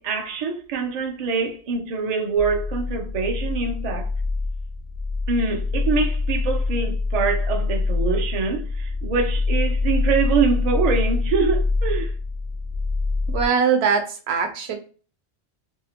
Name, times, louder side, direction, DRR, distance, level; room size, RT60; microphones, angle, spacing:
voice 1, 0.0-4.1 5.3-12.1, right 5 dB, 55° right, 0.4 m, -24 dB
sound 1, 2.4-13.5, left 3 dB, 80° left, 0.9 m, -25 dB
voice 2, 13.3-14.8, right 6 dB, 70° right, 0.8 m, -21 dB
2.7 x 2.1 x 2.7 m
omnidirectional pair, 1.1 m